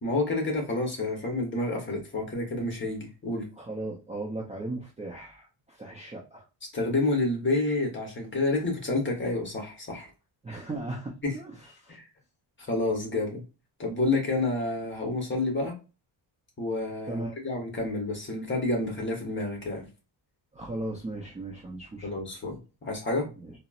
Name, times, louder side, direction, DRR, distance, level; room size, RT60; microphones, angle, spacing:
voice 1, 0.0-3.5 6.7-10.1 11.2-11.3 11.9-12.1 12.6-13.4 13.8-15.7 16.6-19.9 22.0-23.3, left 2 dB, 25° left, 1 dB, 1.0 m, -29 dB
voice 2, 3.6-6.4 10.4-12.0 17.1-17.4 20.5-22.2 23.3-23.5, right 2 dB, 15° right, -3 dB, 0.4 m, -37 dB
4.0 x 2.0 x 2.4 m, 0.31 s
wide cardioid pair, 160°, 46 cm